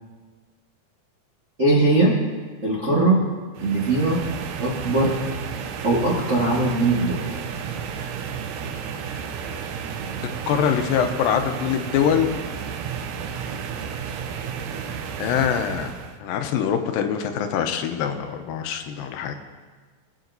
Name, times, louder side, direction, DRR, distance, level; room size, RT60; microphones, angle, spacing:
voice 1, 1.6-2.2 2.6-3.2 3.6-4.2 4.6-5.2 5.8-7.3, right 2 dB, 50° right, -6 dB, 0.8 m, -20 dB
sound 1, 3.6-16.2, right 7 dB, 80° right, 2.2 m, -32 dB
voice 2, 10.5-12.3 15.2-15.9 16.2-19.4, left 8 dB, 85° left, 6 dB, 2.4 m, -23 dB
22.5 x 8.2 x 2.7 m, 1.4 s
omnidirectional pair, 4.1 m